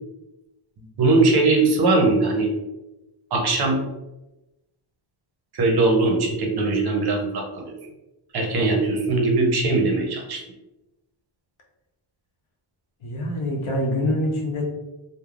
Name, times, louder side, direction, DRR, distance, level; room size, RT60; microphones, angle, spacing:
voice 1, 1.0-2.5 3.3-3.8 5.5-7.7 8.3-10.4, right 3 dB, 55° right, 2 dB, 0.5 m, -20 dB
voice 2, 13.0-14.6, left 1 dB, 75° left, -1 dB, 0.8 m, -25 dB
3.2 x 2.0 x 2.3 m, 0.99 s
wide cardioid pair, 180°, 49 cm